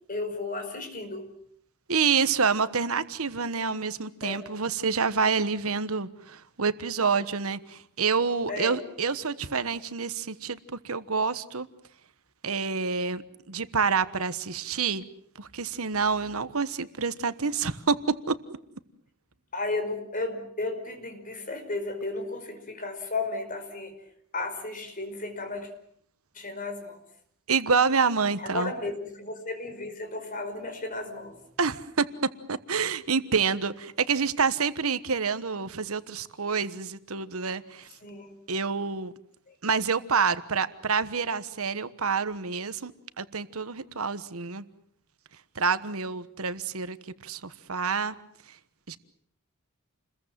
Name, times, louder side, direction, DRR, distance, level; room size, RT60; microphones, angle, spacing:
voice 1, 0.0-1.3 4.2-4.4 8.5-8.8 15.5-15.6 16.1-16.2 19.5-24.0 24.3-25.7 26.3-27.0 28.4-31.4 38.0-38.3 39.5-39.6, left 2 dB, 35° left, 7 dB, 5.1 m, -34 dB
voice 2, 1.9-10.6 10.8-11.7 12.4-13.2 13.5-15.0 15.4-18.0 18.3-18.4 27.5-28.7 31.6-32.0 32.5-37.9 38.5-39.1 39.6-42.9 43.2-44.6 45.5-47.0 47.2-48.1 48.9-49.0, right 5 dB, 70° right, 13 dB, 1.3 m, -27 dB
29.0 x 21.5 x 7.6 m, 0.65 s
head